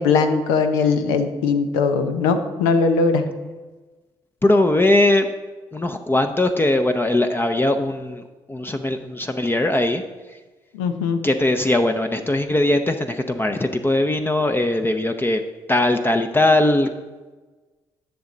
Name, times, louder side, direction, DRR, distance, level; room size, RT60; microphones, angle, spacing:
voice 1, 0.0-3.2 10.7-11.2, left 4 dB, 85° left, 8 dB, 0.7 m, -20 dB
voice 2, 4.4-5.3 5.7-8.2 8.5-10.0 11.2-15.4 15.7-16.9, left 1 dB, 20° left, 6 dB, 0.7 m, -20 dB
10.0 x 6.5 x 4.0 m, 1.3 s
hypercardioid pair, 50°, 12 cm